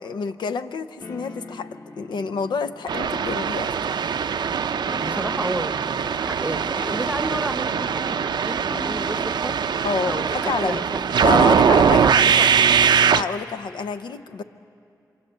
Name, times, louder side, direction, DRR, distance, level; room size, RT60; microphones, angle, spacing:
voice 1, 0.0-3.7 9.8-10.8 11.2-12.0 13.1-14.4, left 5 dB, 85° left, 10 dB, 0.7 m, -28 dB
sound 1, 1.0-11.1, left 2 dB, 40° left, 1.5 m, -41 dB
sound 2, 2.9-13.2, right 7 dB, 75° right, 0.5 m, -21 dB
voice 2, 5.0-9.6 10.1-11.2 11.6-12.7 13.0-13.3, right 1 dB, 15° right, 12 dB, 0.9 m, -32 dB
27.5 x 23.5 x 7.8 m, 2.6 s
cardioid pair, 60°, 8 cm